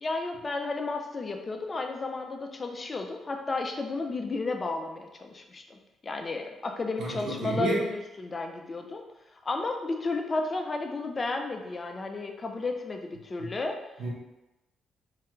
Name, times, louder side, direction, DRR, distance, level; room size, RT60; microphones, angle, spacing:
voice 1, 0.0-9.0 9.4-13.8, left 3 dB, 30° left, 4 dB, 0.4 m, -33 dB
voice 2, 7.0-7.9 13.4-13.5 14.0-14.1, right 2 dB, 70° right, -4 dB, 1.0 m, -30 dB
3.2 x 2.3 x 3.0 m, 1.0 s
cardioid pair, 90°, 0 cm